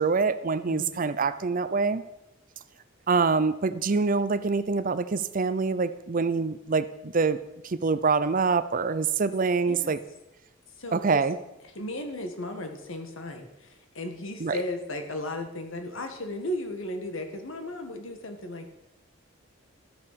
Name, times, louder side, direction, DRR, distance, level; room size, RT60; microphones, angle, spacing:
voice 1, 0.0-2.0 3.1-7.4 7.6-10.0 10.9-11.4 14.4-14.6, right 4 dB, 40° right, 13 dB, 0.6 m, -25 dB
voice 2, 10.8-11.2 11.8-18.7, left 1 dB, 80° left, 6 dB, 1.7 m, -35 dB
13.0 x 7.0 x 6.7 m, 0.91 s
head